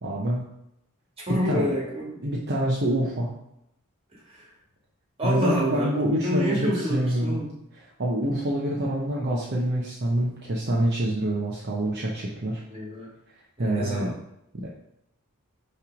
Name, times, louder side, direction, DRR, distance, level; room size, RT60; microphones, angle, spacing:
voice 1, 0.0-0.4 1.4-1.7 2.2-3.3 5.2-7.4 8.0-12.6 13.6-14.1 14.6-14.7, right 1 dB, 50° right, -4 dB, 0.8 m, -26 dB
voice 2, 1.3-2.1 4.1-4.5 5.2-7.5 12.7-13.1 13.6-14.2, equal, 25° right, -4 dB, 1.8 m, -27 dB
5.7 x 3.2 x 5.1 m, 0.81 s
head